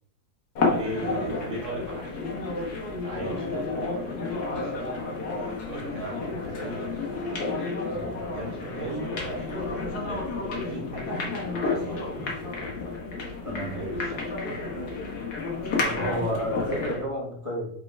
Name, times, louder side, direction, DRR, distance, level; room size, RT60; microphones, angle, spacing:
sound 1, 0.6-17.1, left 3 dB, 60° left, 1.9 m, -31 dB
voice 1, 0.6-2.2 2.5-2.7 3.0-4.2 4.4-7.1 8.3-9.6 10.0-12.1 13.6-14.3, right 1 dB, 40° right, -3 dB, 2.0 m, -38 dB
voice 2, 15.7-17.7, equal, 20° left, -4 dB, 1.5 m, -32 dB
5.9 x 4.5 x 4.7 m, 0.72 s
omnidirectional pair, 1.9 m